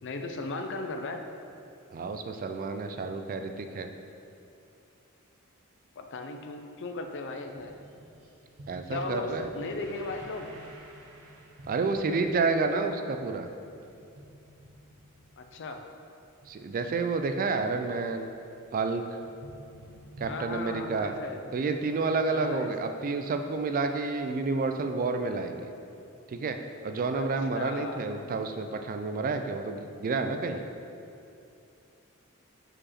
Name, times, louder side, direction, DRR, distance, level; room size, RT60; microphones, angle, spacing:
voice 1, 0.0-1.2 6.0-7.8 8.9-10.5 15.4-15.8 20.2-21.5 22.3-22.7 27.1-27.3 27.5-28.4, left 3 dB, 55° left, 5 dB, 0.5 m, -37 dB
voice 2, 1.9-3.9 8.7-9.6 11.7-13.5 16.5-18.3 18.7-19.0 20.2-21.1 21.5-25.7 26.3-30.7, right 3 dB, 40° right, 7 dB, 0.3 m, -30 dB
sound 1, 7.5-18.9 19.2-22.0, right 1 dB, 80° right, 1.0 m, -51 dB
5.0 x 4.8 x 4.3 m, 2.7 s
head